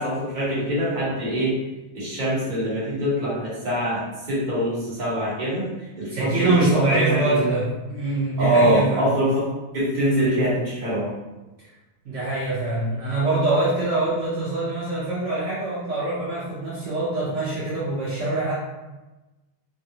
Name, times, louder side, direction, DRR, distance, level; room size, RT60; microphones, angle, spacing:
voice 1, 0.0-1.5 1.9-5.7 6.0-7.4 8.4-9.4 9.7-11.1, equal, 40° right, -8 dB, 0.6 m, -24 dB
voice 2, 6.1-9.1 12.0-18.5, right 2 dB, 85° right, -8 dB, 0.6 m, -24 dB
3.3 x 2.3 x 2.7 m, 1.1 s
omnidirectional pair, 2.2 m